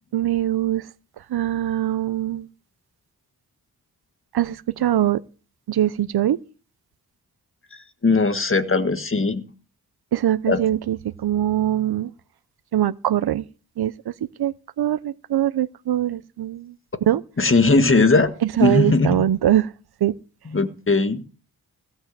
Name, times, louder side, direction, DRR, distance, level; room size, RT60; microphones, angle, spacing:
voice 1, 0.1-0.8 1.3-2.5 4.3-5.2 5.7-6.4 10.1-12.1 12.7-13.4 13.8-14.1 14.4-16.7 17.1-17.2 18.4-19.7 20.0-20.1, right 12 dB, 85° right, 0.7 m, -22 dB
voice 2, 8.0-9.4 10.5-10.6 17.4-18.3 18.6-19.2 20.5-21.2, left 3 dB, 35° left, 1.7 m, -19 dB
17.0 x 5.7 x 8.0 m
cardioid pair, 70°, 37 cm